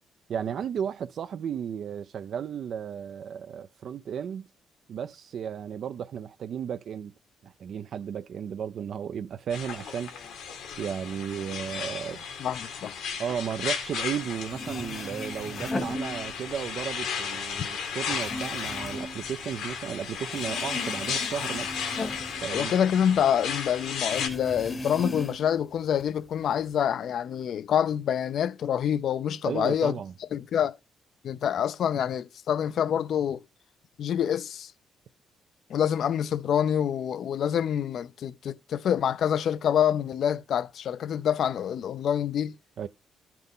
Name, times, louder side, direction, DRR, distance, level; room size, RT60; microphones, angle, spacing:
voice 1, 0.3-4.5 4.9-7.1 7.4-10.1 10.8-12.2 13.2-21.7 22.4-22.7 29.4-30.1 42.8-42.9, right 8 dB, 65° right, 0.4 m, -34 dB
sound 1, 9.5-24.3, left 6 dB, 90° left, 2.0 m, -34 dB
voice 2, 12.4-13.0 22.5-30.0 30.3-30.8 31.2-33.4 34.0-34.7 35.7-42.6, left 9 dB, 65° left, 0.5 m, -26 dB
sound 2, 14.2-14.3 14.5-16.7 17.1-20.0 20.3-23.3 23.5-23.6 24.1-25.6 26.0-26.7, left 1 dB, 30° left, 0.9 m, -37 dB
13.5 x 5.8 x 3.7 m
cardioid pair, 90°, 0 cm